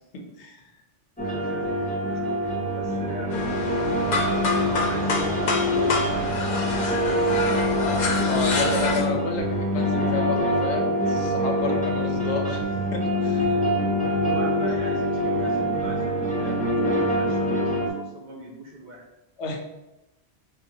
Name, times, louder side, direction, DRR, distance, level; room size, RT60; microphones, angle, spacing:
voice 1, 0.1-0.7 8.3-13.7 19.4-19.6, left 2 dB, 80° left, 3 dB, 1.0 m, -31 dB
sound 1, 1.2-17.9, equal, 10° left, 0.5 m, -25 dB
voice 2, 1.2-3.6 4.9-7.7 14.0-19.0, right 1 dB, 50° right, -1 dB, 0.7 m, -39 dB
sound 2, 3.3-9.0, left 3 dB, 55° left, 0.7 m, -27 dB
5.3 x 2.2 x 2.7 m, 0.93 s
omnidirectional pair, 1.1 m